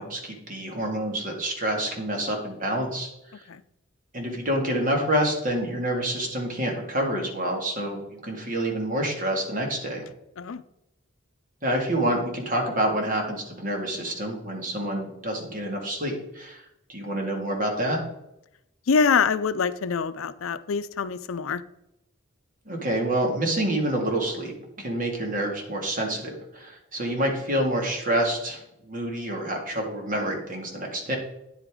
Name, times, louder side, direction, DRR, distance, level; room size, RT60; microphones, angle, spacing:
voice 1, 0.0-3.4 4.1-10.0 11.6-16.6 16.9-18.0 22.7-31.2, right 1 dB, 40° right, 1 dB, 2.1 m, -27 dB
voice 2, 18.9-21.6, left 5 dB, 85° left, 14 dB, 0.5 m, -25 dB
9.5 x 8.2 x 3.7 m, 0.85 s
head